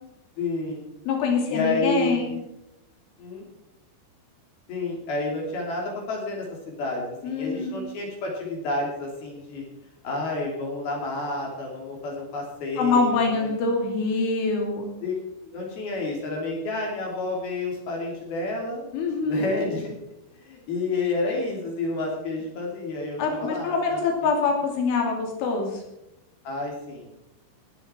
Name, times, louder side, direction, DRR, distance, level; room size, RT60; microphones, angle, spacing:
voice 1, 0.4-0.8 1.5-2.4 3.2-3.4 4.7-9.6 10.0-13.5 15.0-15.1 15.4-18.9 19.2-19.9 20.3-24.0 26.4-27.1, left 2 dB, 55° left, -1 dB, 4.5 m, -30 dB
voice 2, 1.1-2.4 7.2-7.8 12.8-14.9 18.9-19.6 23.2-25.8, left 4 dB, 85° left, 2 dB, 5.2 m, -24 dB
18.0 x 12.0 x 4.4 m, 0.89 s
omnidirectional pair, 5.4 m